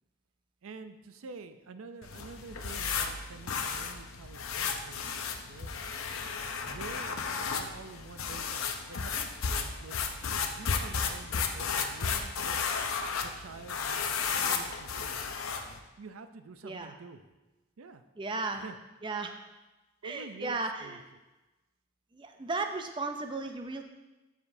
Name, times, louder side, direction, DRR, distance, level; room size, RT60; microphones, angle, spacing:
voice 1, 0.6-5.8 6.7-10.0 10.4-12.7 13.2-15.2 16.0-17.2 17.8-18.0 18.6-18.7 20.0-20.6 20.8-21.0, right 4 dB, 85° right, 9 dB, 0.5 m, -48 dB
sound 1, 2.0-15.8, left 5 dB, 85° left, 0.6 m, -34 dB
voice 2, 16.6-16.9 18.2-18.7 19.0-19.4 20.0-21.1 22.1-23.8, right 3 dB, 25° right, 5 dB, 0.4 m, -35 dB
12.0 x 5.0 x 2.7 m, 1.1 s
head